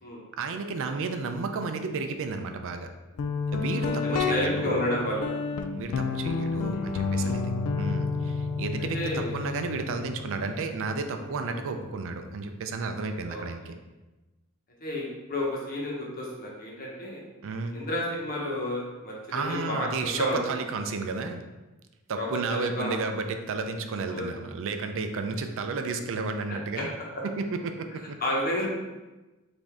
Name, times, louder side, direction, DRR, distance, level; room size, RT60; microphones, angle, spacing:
voice 1, 0.4-2.9 3.5-4.9 5.8-7.4 7.7-13.7 17.4-17.8 19.3-21.4 22.1-26.9 27.4-28.2, right 4 dB, 60° right, 6 dB, 0.4 m, -32 dB
Guitar, 3.2-12.7, left 4 dB, 85° left, 0.4 m, -31 dB
voice 2, 3.8-5.3 7.1-7.4 8.9-9.5 11.4-11.6 13.2-13.4 14.8-17.2 17.7-19.9 20.2-20.4 22.2-23.0 24.1-24.2 26.7-26.8 28.2-28.7, left 1 dB, 40° left, -3 dB, 1.1 m, -31 dB
5.0 x 2.6 x 3.5 m, 1.1 s
head